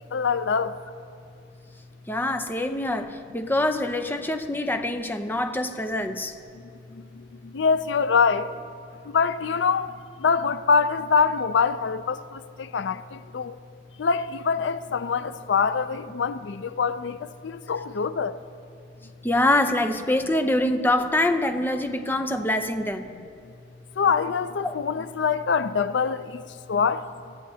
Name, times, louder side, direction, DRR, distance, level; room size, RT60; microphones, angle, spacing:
voice 1, 0.1-0.7 7.5-8.5 9.1-9.9 10.2-13.6 14.0-17.2 17.4-18.3 24.0-26.4 26.7-27.0, left 5 dB, 75° left, 0.5 m, -24 dB
voice 2, 2.1-6.3 19.2-23.1 24.6-24.7, left 1 dB, 10° left, 0.7 m, -25 dB
25.5 x 14.5 x 2.8 m
head